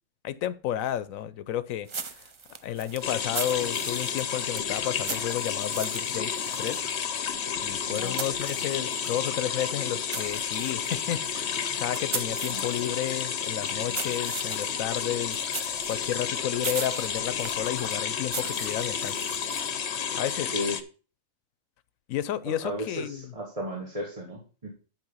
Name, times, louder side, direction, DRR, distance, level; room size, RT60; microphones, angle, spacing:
voice 1, 0.2-2.2 2.5-6.3 6.6-6.8 7.6-15.4 15.9-19.2 20.1-20.5 22.1-23.2, left 11 dB, 90° left, 1.1 m, -32 dB
sound 1, 1.9-9.3 9.6-19.8, right 5 dB, 50° right, 0.3 m, -40 dB
sound 2, 3.0-20.8, left 7 dB, 60° left, 1.0 m, -31 dB
voice 2, 7.8-8.4 12.5-12.6 20.5-20.8 22.4-24.7, equal, 25° right, 1.8 m, -35 dB
11.0 x 4.7 x 5.4 m
omnidirectional pair, 1.4 m